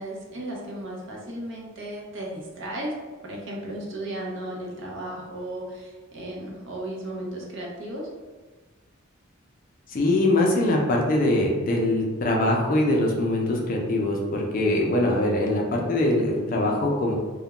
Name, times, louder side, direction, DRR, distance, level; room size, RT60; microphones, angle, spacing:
voice 1, 0.0-2.9 3.2-8.1, right 1 dB, 60° right, -2 dB, 0.6 m, -35 dB
voice 2, 9.9-17.2, left 1 dB, 40° left, -1 dB, 0.4 m, -23 dB
2.3 x 2.1 x 2.9 m, 1.4 s
head